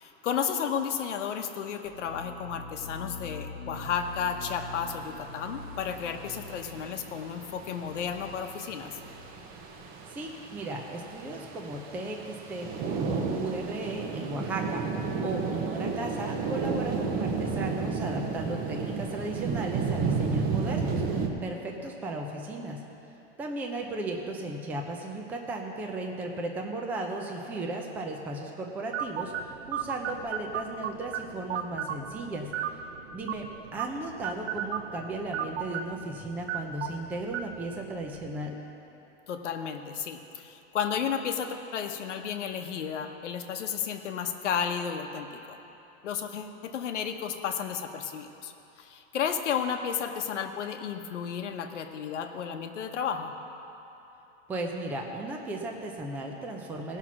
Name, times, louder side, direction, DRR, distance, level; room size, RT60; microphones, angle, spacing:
voice 1, 0.0-8.9 39.3-45.6 46.0-48.5 48.8-53.3, left 7 dB, 85° left, 5 dB, 1.1 m, -33 dB
sound 1, 1.8-9.5, left 3 dB, 45° left, 0.9 m, -44 dB
sound 2, 3.8-21.3, right 5 dB, 25° right, 0.8 m, -33 dB
voice 2, 10.1-14.8 15.2-22.8 23.4-32.5 33.1-38.6 54.5-57.0, right 2 dB, 5° right, 1 dB, 0.4 m, -36 dB
sound 3, 28.9-38.4, right 8 dB, 70° right, 0.7 m, -36 dB
17.0 x 5.9 x 6.0 m, 3.0 s
supercardioid pair, 150°, 35 cm